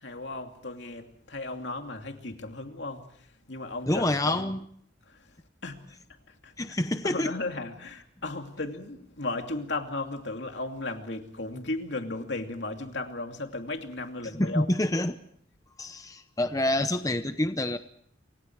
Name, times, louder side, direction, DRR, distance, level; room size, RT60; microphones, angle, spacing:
voice 1, 0.0-3.1 3.5-4.4 5.1-5.2 5.6-5.8 6.4-6.5 7.0-14.7, left 2 dB, 70° left, 2.7 m, -35 dB
voice 2, 3.9-4.6 6.6-7.3 14.2-15.2 15.8-17.8, left 1 dB, 20° left, 0.8 m, -27 dB
27.5 x 25.5 x 4.7 m
head